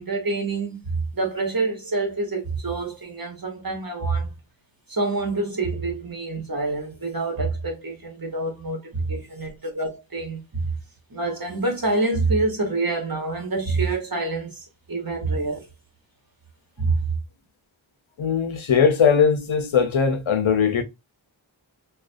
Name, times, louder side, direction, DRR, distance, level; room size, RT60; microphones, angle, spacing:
voice 1, 0.0-4.3 4.9-10.7 11.1-15.7 16.8-17.0, right 3 dB, 50° right, 1.0 m, -26 dB
voice 2, 18.2-20.8, left 6 dB, 85° left, 0.6 m, -20 dB
2.3 x 2.3 x 2.4 m
wide cardioid pair, 40°, 46 cm